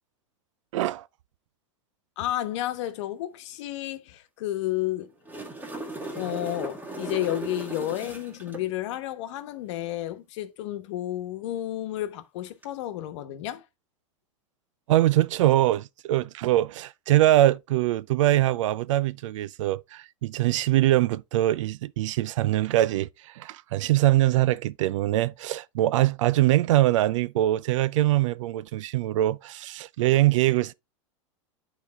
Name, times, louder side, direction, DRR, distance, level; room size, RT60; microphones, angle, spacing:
voice 1, 0.7-1.1 14.9-30.7, right 15 dB, 75° right, 0.5 m, -23 dB
voice 2, 2.2-5.1 6.2-13.6, left 14 dB, 65° left, 1.1 m, -31 dB
sound 1, 5.0-8.6 12.5-12.6, right 2 dB, 10° right, 1.9 m, -37 dB
9.6 x 4.1 x 3.5 m
hypercardioid pair, 115°, 16 cm